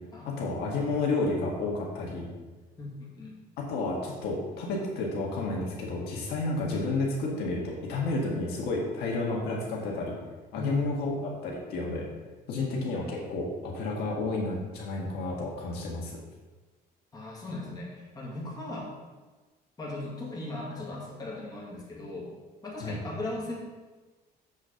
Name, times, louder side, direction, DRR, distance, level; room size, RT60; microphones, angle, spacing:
voice 1, 0.3-2.3 3.6-10.1 10.5-12.0 12.5-16.1 22.8-23.0, left 3 dB, 75° left, -2 dB, 1.9 m, -31 dB
voice 2, 2.8-3.4 10.6-10.8 12.6-12.7 17.1-18.9 19.8-22.3 22.6-23.5, left 2 dB, 25° left, -5 dB, 2.2 m, -37 dB
7.6 x 4.1 x 6.5 m, 1.3 s
cardioid pair, 140°, 17 cm